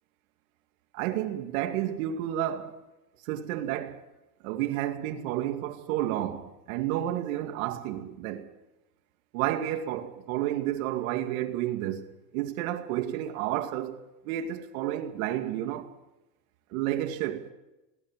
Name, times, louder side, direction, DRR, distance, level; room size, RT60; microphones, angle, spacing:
voice 1, 0.9-2.8 3.3-4.0 4.4-8.5 9.3-12.1 12.3-14.0 14.2-15.9 16.7-17.5, right 12 dB, 60° right, 2.4 m, -31 dB
20.0 x 18.0 x 7.5 m
supercardioid pair, 135°, 48 cm